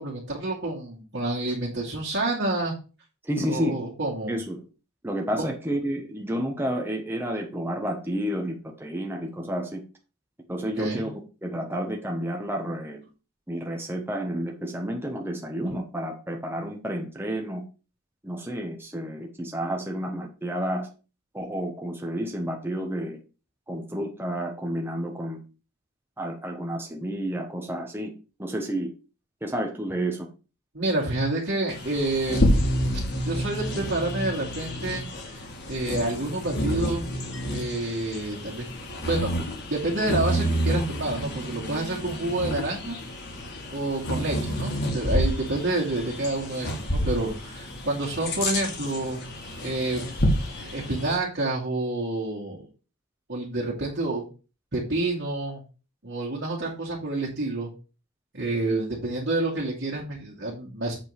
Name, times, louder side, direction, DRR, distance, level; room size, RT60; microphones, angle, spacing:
voice 1, 0.0-2.7 3.4-4.3 5.4-5.5 10.8-11.1 30.7-32.6 33.3-37.1 37.5-38.7 39.0-39.3 39.7-43.0 43.7-49.2 49.6-50.0 50.6-52.7 53.3-54.3 54.7-55.6 56.0-57.7 58.3-60.9, right 2 dB, 50° right, -4 dB, 2.4 m, -28 dB
voice 2, 3.2-3.8 4.3-4.6 5.0-9.8 10.5-11.1 11.4-13.0 13.5-17.6 18.2-20.9 21.3-23.2 23.7-25.4 26.2-28.1 28.4-28.9 29.4-30.3, equal, 10° right, 2 dB, 1.0 m, -30 dB
Bird vocalization bird call bird song, 31.7-51.1, equal, 50° left, 2.0 m, -29 dB
8.1 x 3.9 x 6.4 m, 0.33 s
head